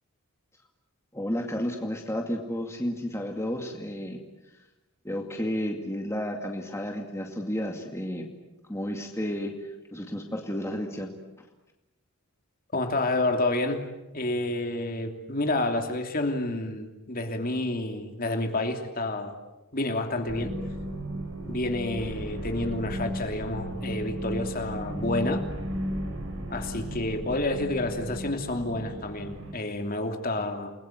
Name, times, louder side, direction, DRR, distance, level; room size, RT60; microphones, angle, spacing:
voice 1, 1.1-4.2 5.0-8.3 8.7-11.1, equal, 15° left, 2 dB, 2.3 m, -32 dB
voice 2, 12.7-13.8 14.1-19.3 19.7-20.5 21.5-25.4 26.5-30.7, left 2 dB, 40° left, 5 dB, 3.0 m, -29 dB
sound 1, 20.3-29.5, equal, 65° right, 5.2 m, -35 dB
29.5 x 21.5 x 9.3 m, 1.0 s
head